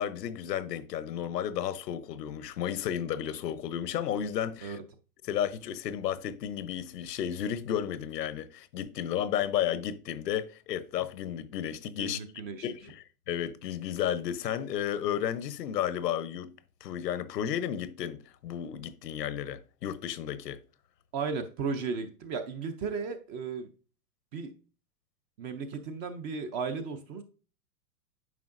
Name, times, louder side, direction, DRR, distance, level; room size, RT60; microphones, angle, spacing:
voice 1, 0.0-4.8 5.2-12.2 12.6-16.5 16.8-20.6, left 10 dB, 80° left, 0.9 m, -33 dB
voice 2, 12.0-12.6 21.1-23.7 24.3-24.5 25.4-27.2, right 5 dB, 20° right, 0.5 m, -35 dB
9.5 x 5.6 x 2.5 m
hypercardioid pair, 135°, 48 cm